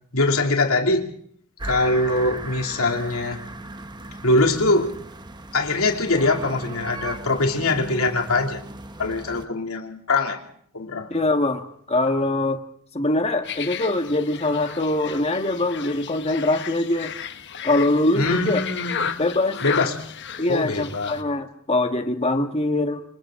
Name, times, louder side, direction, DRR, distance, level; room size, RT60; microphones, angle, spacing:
voice 1, 0.1-1.1 1.6-3.4 4.2-5.0 5.5-8.7 9.0-10.4 10.7-11.1 18.1-19.0 19.6-19.9 20.5-21.2, left 2 dB, 85° left, 3 dB, 2.8 m, -22 dB
sound 1, 1.6-9.4, right 2 dB, 20° right, 0.9 m, -37 dB
voice 2, 11.1-12.6 12.9-17.1 17.6-18.6 19.2-19.6 20.4-23.0, left 2 dB, 30° left, 6 dB, 1.7 m, -23 dB
sound 2, 13.4-21.2, left 7 dB, 55° left, 1.1 m, -34 dB
27.5 x 26.5 x 3.8 m, 0.64 s
head